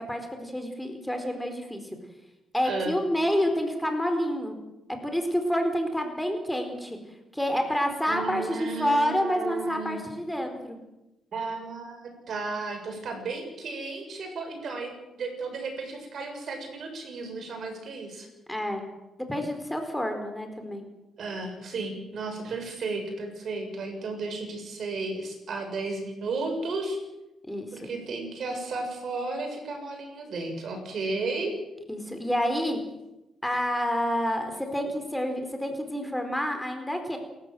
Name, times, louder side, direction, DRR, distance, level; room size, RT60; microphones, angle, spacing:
voice 1, 0.0-1.8 2.5-4.5 5.0-7.0 7.3-10.8 18.5-18.8 19.3-20.8 27.5-27.9 31.9-32.8 33.4-37.2, equal, 5° left, 5 dB, 4.2 m, -28 dB
voice 2, 2.6-3.0 8.1-10.0 11.3-18.3 21.2-27.0 27.7-31.6, right 3 dB, 55° right, 4 dB, 7.4 m, -34 dB
28.5 x 14.0 x 7.9 m, 0.97 s
cardioid pair, 90°, 0 cm